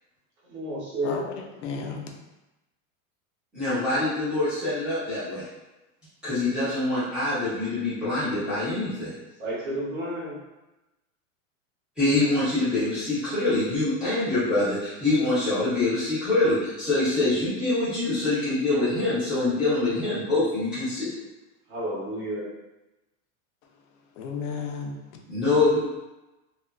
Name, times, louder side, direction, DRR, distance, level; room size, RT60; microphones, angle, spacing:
voice 1, 0.4-1.2 9.4-10.4 21.7-22.5, right 1 dB, 25° right, -10 dB, 0.9 m, -31 dB
voice 2, 1.0-2.2 24.1-25.2, left 5 dB, 60° left, 3 dB, 0.5 m, -34 dB
voice 3, 3.5-5.5 6.2-9.1 12.0-21.1 25.3-25.8, left 2 dB, ahead, -15 dB, 0.5 m, -25 dB
2.7 x 2.4 x 2.2 m, 1.0 s
supercardioid pair, 170°, 42 cm